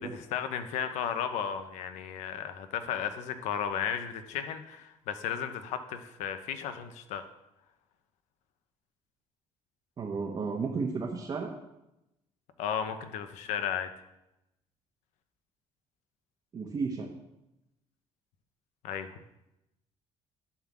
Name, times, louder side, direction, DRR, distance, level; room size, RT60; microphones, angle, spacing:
voice 1, 0.3-7.2 12.6-13.9 18.8-19.1, left 8 dB, 85° left, 9 dB, 0.9 m, -34 dB
voice 2, 10.0-11.5 16.5-17.1, right 4 dB, 35° right, -1 dB, 1.2 m, -33 dB
11.5 x 3.8 x 7.3 m, 0.90 s
cardioid pair, 120°, 12 cm